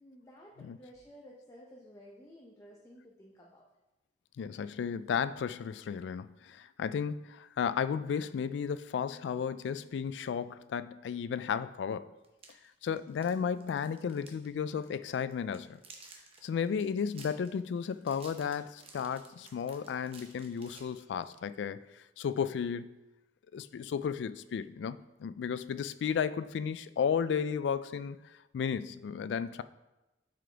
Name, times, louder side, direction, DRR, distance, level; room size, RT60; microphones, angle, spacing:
voice 1, 0.0-3.6, equal, 20° left, 0.7 m, -54 dB
voice 2, 4.4-12.1 12.8-15.8 16.4-23.0 23.5-29.6, left 7 dB, 80° left, 0.3 m, -34 dB
sound 1, 12.2-14.5 14.7-14.9 15.3-21.4, right 4 dB, 35° right, 0.9 m, -54 dB
7.4 x 5.1 x 3.4 m
head